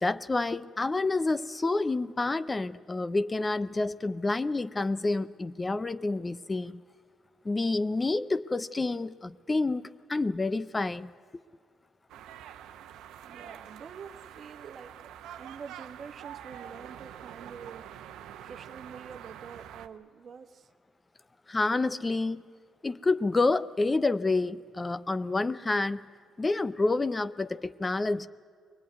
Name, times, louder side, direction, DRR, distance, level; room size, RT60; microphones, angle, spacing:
voice 1, 0.0-6.8 7.4-11.1 21.5-22.4 22.8-26.0 26.4-28.3, left 3 dB, 25° left, 15 dB, 0.5 m, -28 dB
sound 1, 12.1-19.9, right 10 dB, 90° right, 0.9 m, -46 dB
voice 2, 13.2-17.9 18.4-20.7, right 6 dB, 50° right, 9 dB, 1.2 m, -46 dB
23.0 x 18.5 x 9.4 m, 2.1 s
cardioid pair, 90°, 0 cm